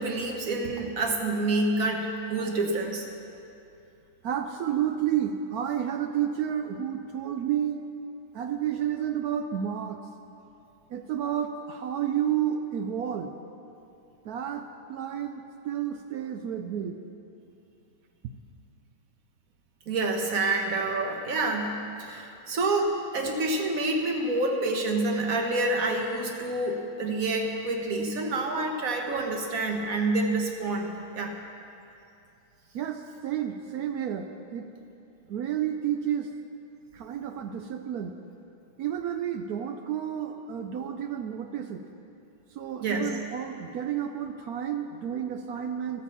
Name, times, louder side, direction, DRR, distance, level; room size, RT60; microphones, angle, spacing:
voice 1, 0.0-3.1 19.9-31.3 42.8-43.1, right 2 dB, 50° right, 2 dB, 1.4 m, -28 dB
voice 2, 4.2-7.8 8.3-10.0 10.9-13.3 14.2-17.0 32.7-34.7 35.3-36.3 36.9-38.1 38.8-41.8 42.5-46.0, right 9 dB, 75° right, 6 dB, 0.8 m, -31 dB
12.5 x 9.0 x 7.0 m, 2.7 s
omnidirectional pair, 2.2 m